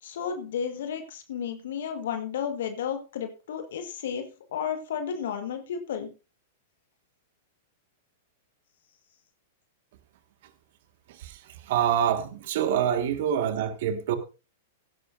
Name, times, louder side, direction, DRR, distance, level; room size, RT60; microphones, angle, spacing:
voice 1, 0.0-6.1, left 7 dB, 65° left, 1.6 m, -33 dB
voice 2, 11.7-14.2, right 9 dB, 55° right, 1.7 m, -26 dB
16.0 x 11.0 x 2.6 m
hypercardioid pair, 105°, 0 cm